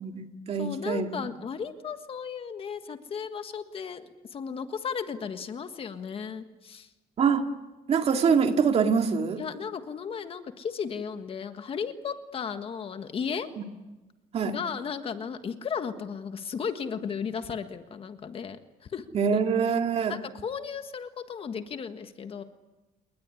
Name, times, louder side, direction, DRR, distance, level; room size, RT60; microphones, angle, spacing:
voice 1, 0.0-1.1 7.2-7.5 7.9-9.4 13.6-13.7 14.3-14.5 19.1-20.2, right 6 dB, 40° right, 5 dB, 2.3 m, -24 dB
voice 2, 0.6-6.9 9.4-13.5 14.4-18.6 18.9-19.0 20.1-22.4, left 6 dB, 35° left, 9 dB, 1.6 m, -35 dB
29.0 x 21.0 x 9.9 m, 1.1 s
cardioid pair, 155°, 16 cm